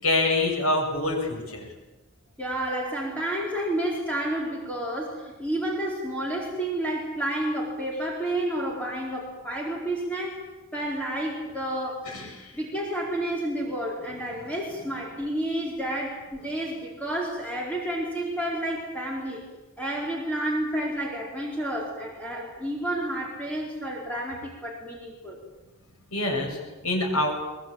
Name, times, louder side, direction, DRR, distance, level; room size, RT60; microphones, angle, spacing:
voice 1, 0.0-1.7 12.1-12.5 26.1-27.3, left 2 dB, 80° left, 2 dB, 7.5 m, -26 dB
voice 2, 2.4-10.4 10.7-12.1 12.5-19.5 19.8-25.4, right 1 dB, 5° left, -3 dB, 4.6 m, -30 dB
23.0 x 21.5 x 8.9 m, 1.1 s
head